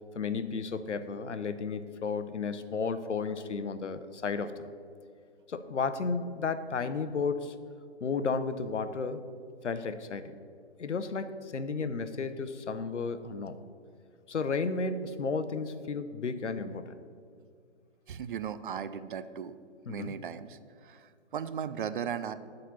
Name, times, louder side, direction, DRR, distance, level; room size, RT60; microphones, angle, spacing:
voice 1, 0.1-4.6 5.5-7.6 8.0-9.2 9.6-10.3 10.8-13.5 14.3-16.9 19.9-20.2, left 4 dB, 85° left, 11 dB, 0.7 m, -33 dB
voice 2, 18.1-19.6 19.9-22.3, right 8 dB, 50° right, 12 dB, 0.4 m, -37 dB
8.4 x 4.0 x 6.9 m, 2.2 s
figure-of-eight pair, 130°, 35 cm